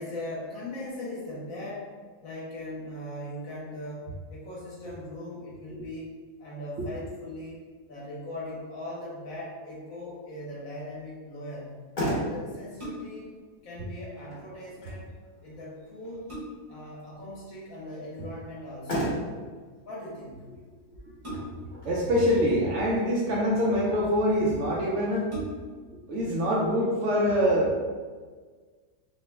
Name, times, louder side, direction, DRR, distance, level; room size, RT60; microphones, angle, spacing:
voice 1, 0.0-7.6 7.9-11.8 12.1-13.3 13.6-15.1 15.4-16.3 16.7-19.1 19.9-20.5 21.0-21.1, left 1 dB, 60° left, -5 dB, 1.1 m, -39 dB
Motor vehicle (road), 11.6-24.5, equal, 45° left, 0.6 m, -38 dB
sound 1, 12.8-13.3 15.4-15.5 15.9-16.8 18.4-18.8 21.2-21.8 22.8-23.5 24.2-24.3 24.7-24.8 25.2-25.9 26.4-26.5, equal, 30° right, 0.7 m, -40 dB
voice 2, 21.8-25.3 26.1-27.8, equal, 70° right, -4 dB, 0.7 m, -25 dB
3.6 x 2.0 x 3.2 m, 1.5 s
omnidirectional pair, 1.8 m